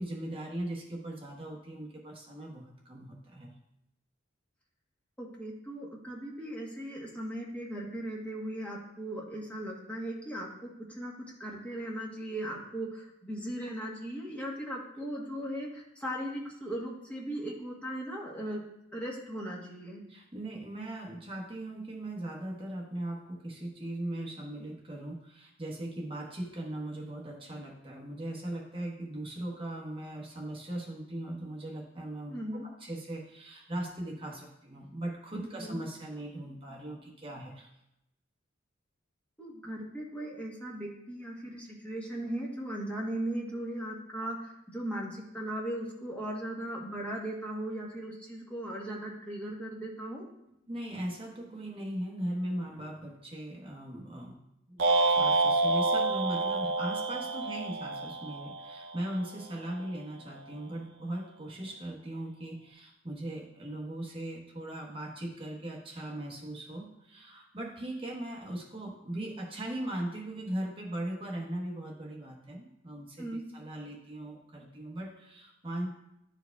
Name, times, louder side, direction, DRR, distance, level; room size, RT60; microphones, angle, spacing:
voice 1, 0.0-3.5 20.1-37.7 50.7-54.4 54.7-75.9, right 1 dB, 25° right, -2 dB, 1.1 m, -39 dB
voice 2, 5.2-11.1 11.4-18.6 18.9-20.0 32.3-32.6 35.6-35.8 39.4-50.2 73.2-73.4, right 1 dB, 5° left, -3 dB, 1.1 m, -38 dB
sound 1, 54.8-59.1, right 3 dB, 60° right, 0.6 m, -28 dB
10.5 x 4.7 x 2.3 m, 0.83 s
head